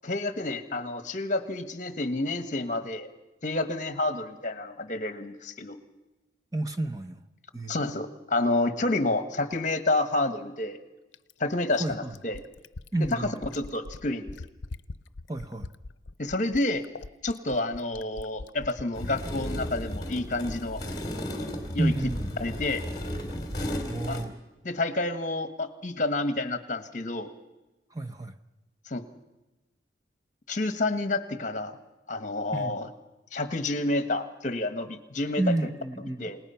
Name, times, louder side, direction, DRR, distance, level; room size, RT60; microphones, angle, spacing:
voice 1, 0.0-3.1 3.4-5.8 7.7-10.8 11.4-12.4 13.0-14.3 16.2-16.8 17.2-20.8 21.7-21.9 22.4-22.8 24.1-24.2 24.6-27.3 28.9-29.0 30.5-31.8 32.1-32.9 33.3-35.5 36.2-36.4, left 2 dB, 40° left, 9 dB, 1.4 m, -29 dB
voice 2, 6.5-7.2 7.5-7.8 11.8-12.1 12.9-13.4 15.3-15.7 21.8-22.3 23.8-24.3 27.9-28.3 32.5-32.8 35.4-36.3, right 2 dB, 20° right, 6 dB, 0.8 m, -30 dB
Fill (with liquid), 11.1-19.2 20.6-20.7, left 3 dB, 80° left, 0.6 m, -42 dB
sound 1, 18.9-24.2, equal, 20° left, 3.0 m, -34 dB
29.0 x 18.5 x 5.7 m, 1.0 s
head